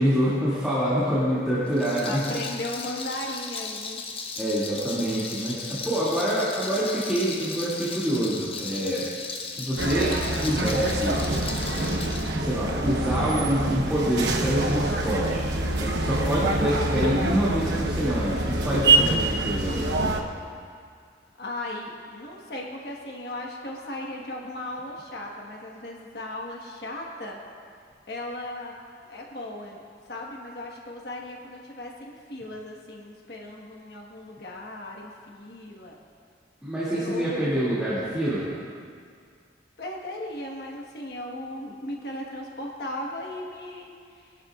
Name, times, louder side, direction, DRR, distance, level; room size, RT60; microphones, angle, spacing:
voice 1, 0.0-2.3 4.4-9.0 9.5-11.2 11.6-12.0 12.3-15.5 15.8-19.9 36.6-38.5, equal, 5° right, -12 dB, 2.4 m, -26 dB
Rattle, 1.7-12.3, left 4 dB, 30° left, 0.9 m, -36 dB
voice 2, 2.0-4.0 5.9-6.0 21.4-27.4 28.1-28.7 29.1-29.8 30.1-36.0 36.9-37.6 39.8-44.3, left 1 dB, 55° left, -1 dB, 1.4 m, -37 dB
sound 1, 9.8-20.2, right 2 dB, 70° right, 1.0 m, -25 dB
21.0 x 11.5 x 2.4 m, 2.1 s
head